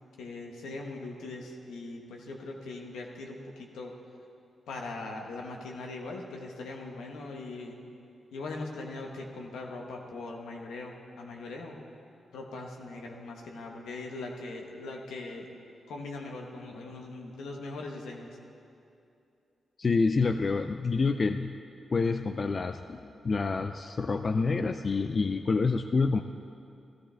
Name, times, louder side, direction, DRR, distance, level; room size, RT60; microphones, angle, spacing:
voice 1, 0.2-3.9 4.7-7.8 8.3-11.7 12.3-15.5 15.9-18.4, left 2 dB, 85° left, 0 dB, 1.4 m, -40 dB
voice 2, 19.8-21.6 21.9-26.2, left 4 dB, 50° left, 8 dB, 0.4 m, -27 dB
15.5 x 13.5 x 3.5 m, 2.6 s
supercardioid pair, 45°, 0 cm